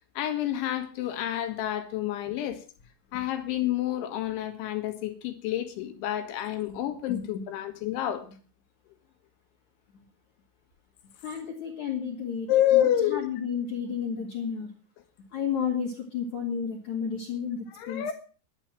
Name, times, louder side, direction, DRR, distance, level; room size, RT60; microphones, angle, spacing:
voice 1, 0.2-2.6 3.1-8.2 12.5-13.3 17.7-18.1, left 12 dB, 70° left, 3.9 m, -28 dB
voice 2, 11.2-12.5 12.7-14.7 15.3-18.0, left 7 dB, 45° left, 2.8 m, -32 dB
11.5 x 11.5 x 7.5 m
omnidirectional pair, 6.0 m